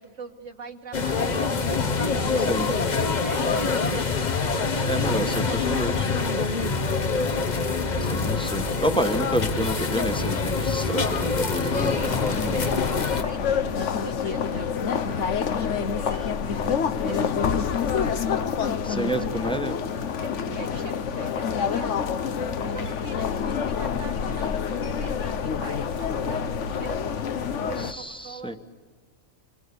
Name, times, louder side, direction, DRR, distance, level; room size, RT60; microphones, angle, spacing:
voice 1, 0.0-1.8 2.4-5.7 7.1-7.9 11.5-18.5 18.9-19.6 20.2-22.3 22.6-27.0 27.5-28.6, right 4 dB, 70° right, 4 dB, 2.2 m, -42 dB
sound 1, 0.9-13.2, left 4 dB, 35° left, 1.1 m, -25 dB
voice 2, 2.4-2.7 4.9-6.1 8.0-12.0 12.3-12.6 18.8-19.7 27.9-28.6, equal, 5° left, 7 dB, 1.2 m, -29 dB
sound 2, 11.7-27.9, left 7 dB, 70° left, 1.3 m, -27 dB
27.0 x 22.5 x 8.4 m, 1.5 s
omnidirectional pair, 1.3 m